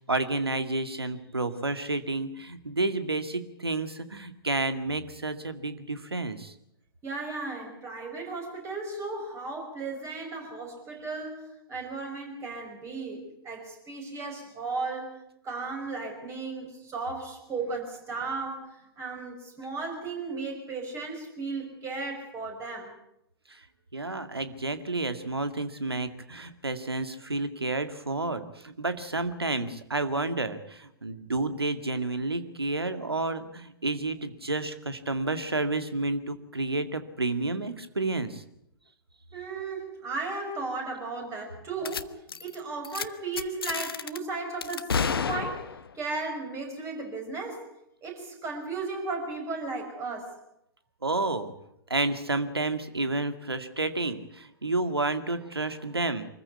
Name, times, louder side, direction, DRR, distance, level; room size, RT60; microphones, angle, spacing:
voice 1, 0.1-6.5 23.5-23.6 23.9-38.4 51.0-51.5 51.9-56.3, right 2 dB, 85° right, 10 dB, 2.1 m, -30 dB
voice 2, 7.0-22.9 39.3-47.7 48.0-50.4, right 3 dB, 20° right, 2 dB, 5.8 m, -35 dB
sound 1, 41.8-42.0 42.3-42.5 42.8-43.0 43.4-44.2 44.6-45.9, left 6 dB, 70° left, 1.1 m, -30 dB
24.5 x 15.0 x 9.4 m, 0.77 s
figure-of-eight pair, 115°, 13 cm